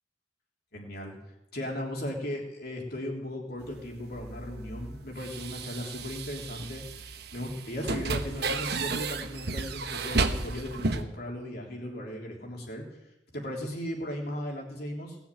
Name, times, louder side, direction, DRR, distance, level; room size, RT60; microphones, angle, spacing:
voice 1, 0.7-1.2 1.5-12.8 13.3-15.2, equal, 50° left, 0 dB, 3.4 m, -37 dB
sound 1, 3.6-11.0, right 3 dB, 55° right, 1.1 m, -33 dB
19.0 x 7.2 x 9.1 m, 0.88 s
head